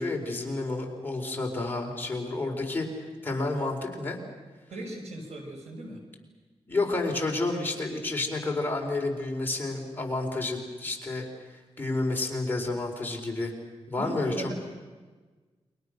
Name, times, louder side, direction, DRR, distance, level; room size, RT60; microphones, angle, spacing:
voice 1, 0.0-2.9 3.2-4.2 6.7-13.5 13.9-14.5, left 2 dB, 20° left, 0 dB, 4.4 m, -30 dB
voice 2, 4.7-6.0 14.0-14.5, right 1 dB, 90° right, 1 dB, 6.1 m, -38 dB
29.5 x 24.0 x 6.6 m, 1.4 s
wide cardioid pair, 120°, 11 cm